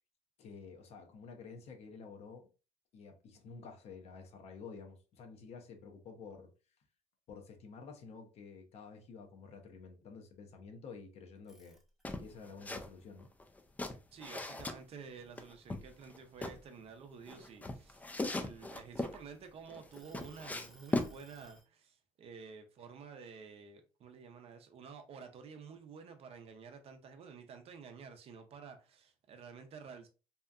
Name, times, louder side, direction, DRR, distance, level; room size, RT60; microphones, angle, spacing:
voice 1, 0.4-2.5 2.9-6.5 7.3-11.8 12.2-13.3, left 5 dB, 60° left, 0.6 m, -51 dB
sound 1, 11.4-12.3 12.8-14.6 15.0-15.3 15.7-17.5 18.2-19.4 19.9-21.7, equal, 5° right, 0.7 m, -64 dB
sound 2, 12.0-12.9 13.2-14.8 15.4-16.6 17.3-19.2 19.7-21.1, left 2 dB, 10° left, 0.3 m, -38 dB
voice 2, 14.1-18.0 18.3-30.1, right 6 dB, 50° right, 0.5 m, -51 dB
2.7 x 2.4 x 2.3 m
cardioid pair, 110°, 12 cm